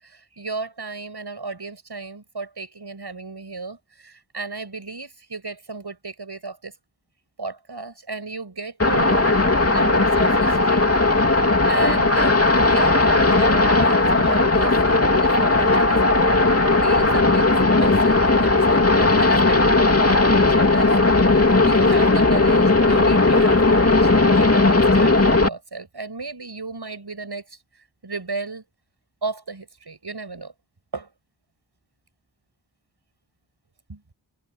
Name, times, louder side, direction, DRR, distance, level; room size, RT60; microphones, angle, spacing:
voice 1, 0.0-6.8 7.4-9.3 9.7-10.9 11.7-16.4 16.8-17.5 17.8-21.0 21.6-27.6 28.0-28.6 29.2-30.5 30.9-31.1 33.9-34.1, right 3 dB, 60° right, 7.4 m, -34 dB
sound 1, 8.8-25.5, left 2 dB, 30° left, 2.7 m, -17 dB
wide cardioid pair, 60°, 44 cm